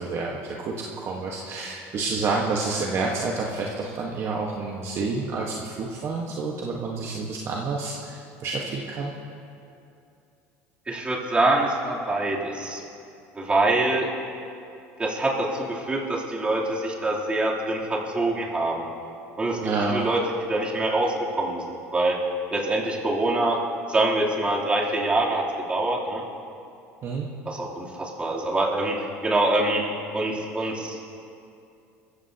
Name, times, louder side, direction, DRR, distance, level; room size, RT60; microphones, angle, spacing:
voice 1, 0.0-9.1 19.6-20.0 27.0-27.3, right 3 dB, 45° right, -1 dB, 1.4 m, -29 dB
voice 2, 10.9-12.8 13.3-14.1 15.0-18.9 19.4-19.6 19.9-20.2 20.5-21.6 21.9-22.2 22.5-23.6 23.9-26.2 27.4-29.8 30.1-31.0, right 2 dB, 20° right, -5 dB, 3.2 m, -25 dB
23.0 x 14.5 x 2.9 m, 2.6 s
supercardioid pair, 105°, 6 cm